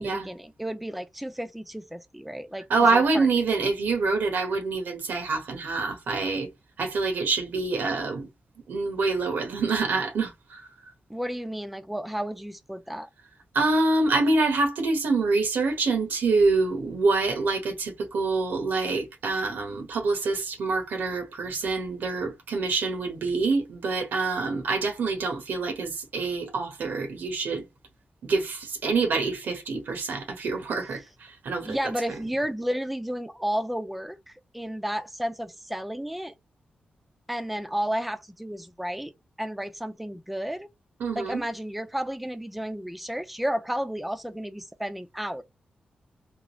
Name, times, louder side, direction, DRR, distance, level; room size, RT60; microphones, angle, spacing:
voice 1, 0.0-3.3 11.1-13.1 31.6-36.3 37.3-39.1 39.4-40.7 41.2-45.4, equal, 5° right, 0.4 m, -32 dB
voice 2, 2.7-6.5 6.8-8.3 8.7-10.6 13.5-27.6 28.2-31.0 31.4-31.9 32.2-32.3 41.0-41.4, right 3 dB, 85° right, 1.2 m, -26 dB
3.7 x 2.4 x 3.0 m
cardioid pair, 95°, 3 cm